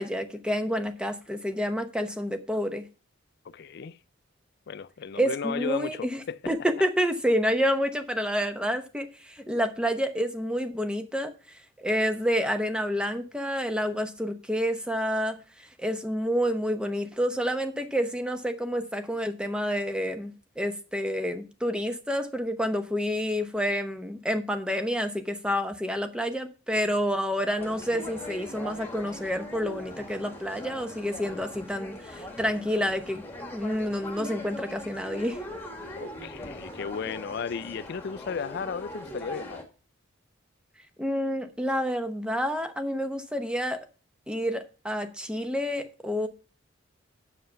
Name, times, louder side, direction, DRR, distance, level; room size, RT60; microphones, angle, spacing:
voice 1, 0.0-2.8 5.2-11.3 11.8-15.4 15.8-33.2 33.5-35.4 41.0-43.8 44.3-46.3, equal, 5° right, 0.8 m, -29 dB
voice 2, 3.4-4.0 4.7-6.4 36.0-39.6, left 6 dB, 55° left, 0.4 m, -35 dB
sound 1, 27.6-39.6, left 1 dB, 10° left, 1.6 m, -41 dB
7.5 x 6.9 x 5.6 m
head